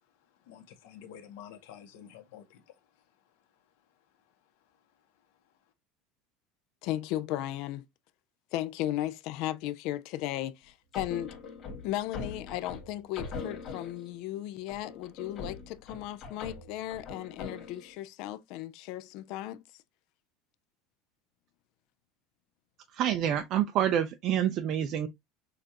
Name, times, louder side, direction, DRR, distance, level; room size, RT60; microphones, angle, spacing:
voice 1, 0.4-2.8, left 9 dB, 70° left, 1.2 m, -49 dB
voice 2, 6.8-7.8 8.5-11.3 11.8-19.6, left 14 dB, 50° left, 0.4 m, -35 dB
sound 1, 10.9-14.2 14.7-17.9, left 4 dB, 25° left, 1.7 m, -42 dB
voice 3, 22.9-25.1, right 10 dB, 35° right, 0.4 m, -27 dB
6.4 x 2.5 x 2.8 m
cardioid pair, 180°, 0 cm